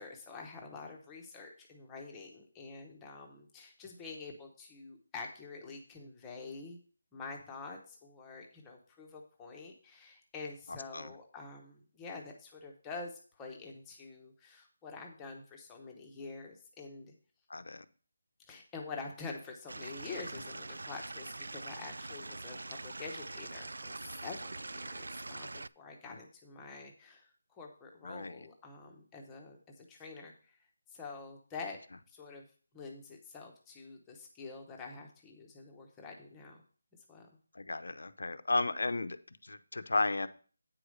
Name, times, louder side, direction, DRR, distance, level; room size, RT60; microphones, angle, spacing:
voice 1, 0.0-6.8 7.1-17.1 18.5-30.3 30.9-31.8 32.1-32.5 32.7-36.6 37.1-37.3, left 4 dB, 5° left, 0.8 m, -47 dB
voice 2, 10.7-11.1 17.5-17.9 26.1-26.2 28.0-28.4 37.5-40.3, left 3 dB, 65° left, 0.7 m, -34 dB
Stream / Liquid, 19.7-25.7, right 2 dB, 85° right, 0.3 m, -43 dB
9.0 x 4.9 x 6.4 m
figure-of-eight pair, 180°, 0 cm